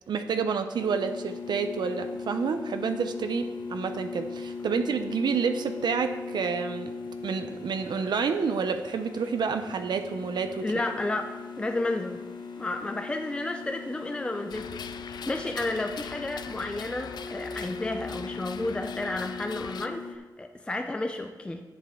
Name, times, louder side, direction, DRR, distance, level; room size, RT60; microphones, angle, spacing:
voice 1, 0.1-6.9 7.2-10.6, right 5 dB, 85° right, 8 dB, 0.6 m, -29 dB
sound 1, 0.8-20.2, left 4 dB, 90° left, 0.8 m, -39 dB
voice 2, 10.6-12.2 12.6-21.6, left 2 dB, 15° left, 5 dB, 0.5 m, -32 dB
sound 2, 14.5-19.9, left 7 dB, 70° left, 0.4 m, -42 dB
10.0 x 8.2 x 3.7 m, 1.3 s
wide cardioid pair, 165°, 7 cm